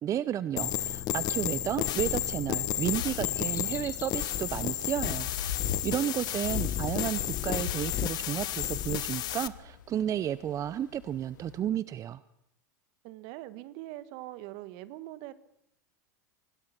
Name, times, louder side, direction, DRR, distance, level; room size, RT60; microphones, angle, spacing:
voice 1, 0.0-12.2, right 10 dB, 35° right, 16 dB, 0.7 m, -32 dB
sound 1, 0.6-9.5, left 13 dB, 45° left, 1.2 m, -32 dB
sound 2, 2.0-11.6, left 8 dB, 85° left, 2.4 m, -42 dB
voice 2, 13.0-15.3, right 16 dB, 55° right, 14 dB, 1.5 m, -43 dB
24.5 x 18.0 x 6.0 m, 0.81 s
hypercardioid pair, 100°, 10 cm